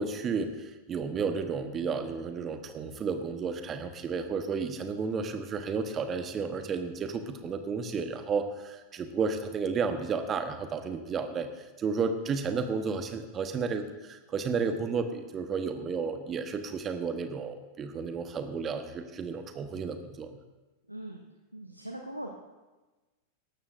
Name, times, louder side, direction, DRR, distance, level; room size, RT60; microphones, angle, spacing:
voice 1, 0.0-20.4, right 5 dB, 25° right, 7 dB, 1.2 m, -32 dB
voice 2, 20.9-21.3 21.5-22.3, right 1 dB, 90° right, 2 dB, 0.9 m, -40 dB
18.5 x 13.0 x 2.6 m, 1.2 s
figure-of-eight pair, 90°, 0 cm